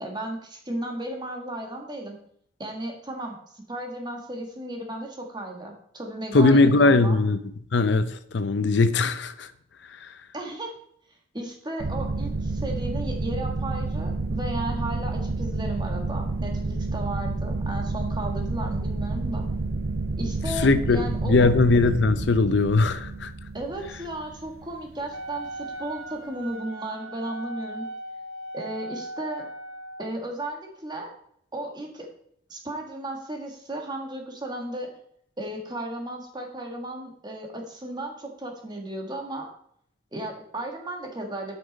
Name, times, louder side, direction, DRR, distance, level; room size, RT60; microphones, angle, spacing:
voice 1, 0.0-2.2 2.6-7.2 10.3-10.7 11.3-19.5 20.2-21.5 23.5-27.9 28.5-29.5 30.0-31.1 31.5-32.1 32.5-34.9 35.4-39.5 40.1-41.5, right 1 dB, 25° right, 1.7 m, -34 dB
voice 2, 6.3-7.4 7.7-9.5 10.0-10.1 20.5-23.3, left 3 dB, 65° left, 0.6 m, -20 dB
sound 1, 11.8-25.0, right 2 dB, 50° right, 0.7 m, -29 dB
Wind instrument woodwind instrument, 25.1-30.1, right 1 dB, 80° right, 0.9 m, -38 dB
8.0 x 6.1 x 5.3 m
head